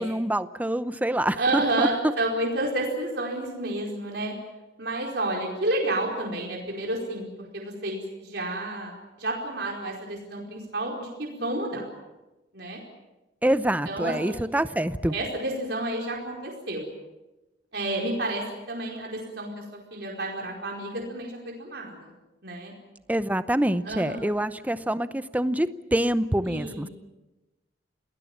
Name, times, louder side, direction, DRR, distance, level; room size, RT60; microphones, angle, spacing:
voice 1, 0.0-1.9 13.4-15.1 23.1-26.9, right 1 dB, 10° right, 13 dB, 0.7 m, -26 dB
voice 2, 1.4-4.3 4.8-7.3 7.5-11.8 12.5-12.8 13.9-14.1 15.1-16.8 17.7-19.6 19.9-22.1 22.4-22.7 23.9-24.3 26.5-26.9, right 1 dB, 65° right, -1 dB, 4.8 m, -30 dB
28.5 x 19.0 x 7.3 m, 1.0 s
head